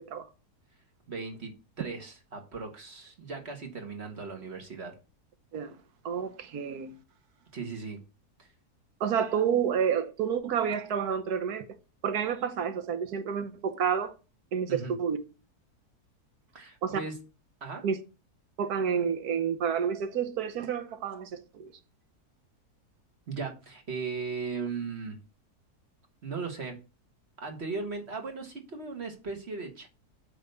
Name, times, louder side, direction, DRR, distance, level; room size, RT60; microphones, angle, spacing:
voice 1, 1.1-5.0 7.5-8.0 8.4-8.5 14.7-14.9 16.5-17.2 17.6-17.9 23.3-25.2 26.2-26.8 27.4-29.9, right 4 dB, 40° right, 1.8 m, -37 dB
voice 2, 6.0-6.9 9.0-11.7 12.0-14.1 14.5-15.2 16.8-17.0 17.8-18.0 18.6-21.7, right 7 dB, 75° right, 1.3 m, -29 dB
8.6 x 3.5 x 6.7 m
omnidirectional pair, 1.7 m